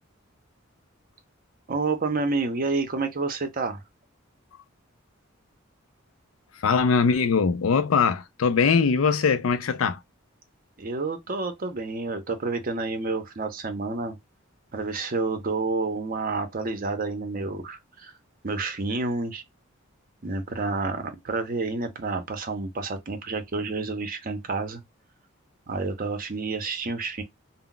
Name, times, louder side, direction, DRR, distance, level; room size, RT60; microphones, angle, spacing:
voice 1, 1.7-3.8 10.8-14.2 14.7-18.1 18.4-19.4 20.2-24.8 25.7-27.2, right 3 dB, 45° right, 0.6 m, -29 dB
voice 2, 6.6-10.0, left 5 dB, 80° left, 0.4 m, -21 dB
2.2 x 2.0 x 3.8 m
head